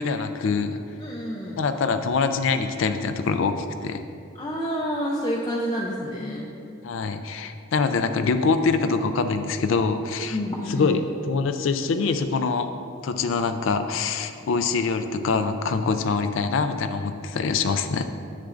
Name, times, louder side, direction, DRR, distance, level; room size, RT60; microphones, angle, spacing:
voice 1, 0.0-0.8 1.6-4.0 6.8-10.4 10.7-11.0 11.3-12.7 13.0-18.1, left 4 dB, 75° left, 8 dB, 0.4 m, -24 dB
voice 2, 1.0-1.6 4.4-6.6 10.3-10.9, equal, 20° left, -4 dB, 0.5 m, -28 dB
9.8 x 7.4 x 2.5 m, 2.5 s
head